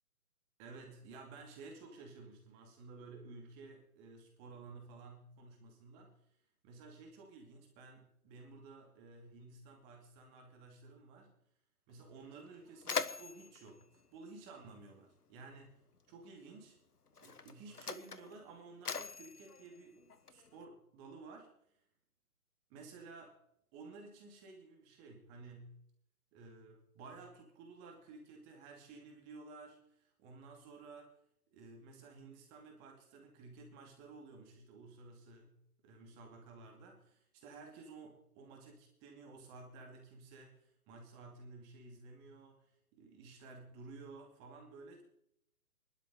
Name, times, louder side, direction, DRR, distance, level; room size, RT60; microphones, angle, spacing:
voice 1, 0.6-6.2 6.6-11.4 11.9-16.8 17.2-21.5 22.7-23.4 23.7-25.8 26.3-31.2 31.5-45.0, right 3 dB, 20° right, 2 dB, 2.6 m, -54 dB
Mechanisms, 11.9-12.0 12.4-15.1 16.1-16.2 17.1-20.6, left 5 dB, 85° left, 1.3 m, -43 dB
23.0 x 12.0 x 4.0 m, 0.73 s
figure-of-eight pair, 135°, 45 cm